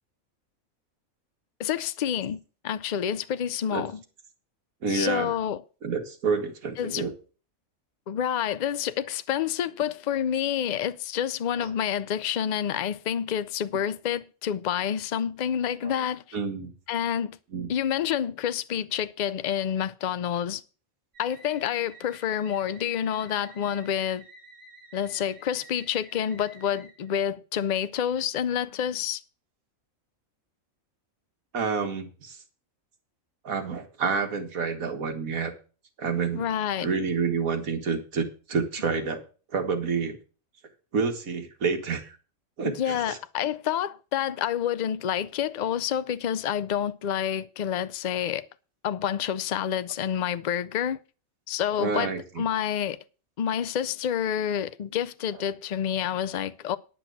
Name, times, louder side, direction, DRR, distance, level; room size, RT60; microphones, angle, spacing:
voice 1, 1.6-2.4 2.6-4.0 4.9-5.6 6.8-7.0 8.1-16.2 16.9-17.4 17.7-20.6 21.2-24.2 24.9-29.2 36.3-36.9 42.8-48.4 48.8-51.0 51.5-53.0 53.4-56.8, left 9 dB, 60° left, 0.4 m, -28 dB
voice 2, 4.8-5.4 5.8-7.1 11.6-11.7 15.8-16.0 16.3-16.7 17.5-17.7 31.5-32.4 33.4-35.5 36.0-36.5 36.8-39.2 39.5-40.2 40.9-42.2 42.6-43.2 51.7-52.4 55.3-55.4, right 5 dB, 80° right, 2.0 m, -29 dB
sound 1, 21.1-27.2, right 3 dB, 35° right, 3.0 m, -51 dB
10.0 x 6.1 x 7.8 m
omnidirectional pair, 1.4 m